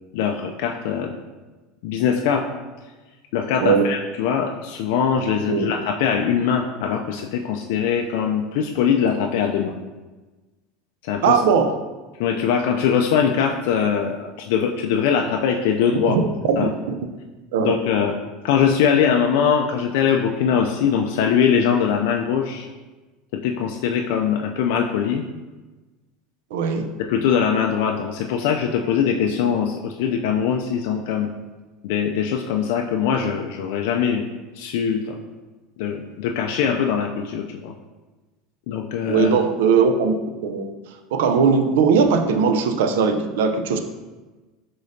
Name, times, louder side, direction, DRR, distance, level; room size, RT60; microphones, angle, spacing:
voice 1, 0.1-1.2 1.8-2.5 3.3-9.7 11.0-11.4 12.2-16.2 16.6-16.7 17.6-18.2 18.4-22.7 23.3-25.3 27.1-31.3 31.8-34.2 34.6-35.2 35.8-37.7 38.7-39.3, left 7 dB, 70° left, 2 dB, 0.3 m, -22 dB
voice 2, 11.2-11.8 16.1-16.2 16.5-16.7 17.5-17.7 26.5-26.9 39.1-40.2 40.4-40.7 41.1-43.8, right 6 dB, 85° right, 6 dB, 0.4 m, -19 dB
5.0 x 3.8 x 2.6 m, 1.2 s
supercardioid pair, 145°, 0 cm